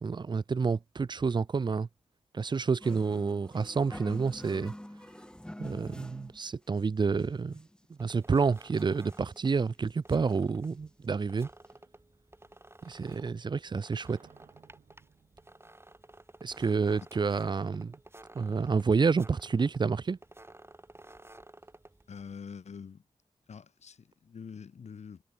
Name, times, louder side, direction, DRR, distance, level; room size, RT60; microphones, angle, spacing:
voice 1, 0.0-1.9 2.3-4.7 5.6-11.5 12.8-14.2 16.4-18.0 18.3-20.2, right 5 dB, 40° right, 0.5 m, -29 dB
sound 1, 2.8-6.4 6.8-6.9 7.1-7.9 8.3-8.4 8.6-9.4 9.9-10.0 10.3-11.0 11.4-11.5 11.7-11.8, left 1 dB, 5° left, 2.2 m, -46 dB
sound 2, 8.0-22.4, right 2 dB, 20° right, 3.2 m, -54 dB
sound 3, 11.6-17.1, right 7 dB, 90° right, 4.6 m, -65 dB
voice 2, 22.1-23.0 23.5-25.2, left 6 dB, 80° left, 5.5 m, -45 dB
cardioid pair, 55°, 11 cm